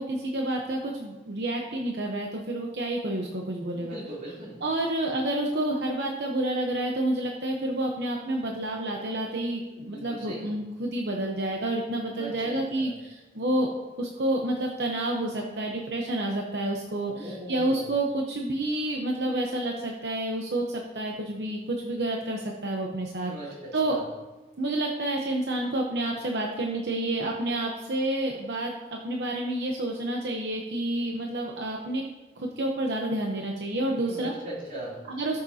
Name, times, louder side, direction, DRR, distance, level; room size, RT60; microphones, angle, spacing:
voice 1, 0.0-4.0 4.6-13.7 14.0-24.0 24.6-32.0 32.4-34.3 35.1-35.4, right 1 dB, 80° right, 0 dB, 0.9 m, -29 dB
voice 2, 3.7-4.6 9.8-10.5 12.2-12.9 17.1-17.9 23.2-24.0 33.9-35.0, right 1 dB, 45° right, -6 dB, 3.4 m, -39 dB
17.5 x 6.6 x 2.8 m, 1.2 s
head